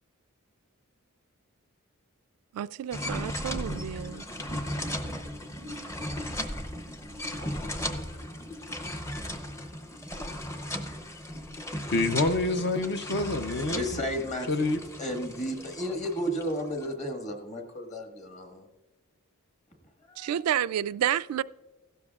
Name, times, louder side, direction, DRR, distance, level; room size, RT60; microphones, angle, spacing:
voice 1, 2.5-4.3 20.2-21.4, right 10 dB, 80° right, 0.3 m, -30 dB
sound 1, 2.9-16.9, left 1 dB, 15° left, 0.6 m, -36 dB
voice 2, 11.9-14.0 14.5-14.8, left 2 dB, 50° left, 0.6 m, -27 dB
voice 3, 13.8-18.6 20.1-20.3, equal, 35° left, 1.5 m, -33 dB
15.5 x 12.5 x 2.4 m
head